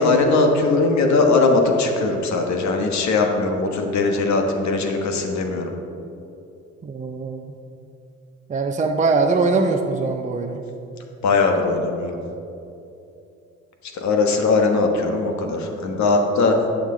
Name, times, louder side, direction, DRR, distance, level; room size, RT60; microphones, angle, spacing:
voice 1, 0.0-5.7 11.2-12.2 13.9-16.6, left 3 dB, 70° left, 3 dB, 1.3 m, -20 dB
voice 2, 6.8-7.6 8.5-10.6, right 3 dB, 25° right, 4 dB, 0.6 m, -22 dB
11.0 x 6.6 x 3.9 m, 2.7 s
cardioid pair, 80°, 30 cm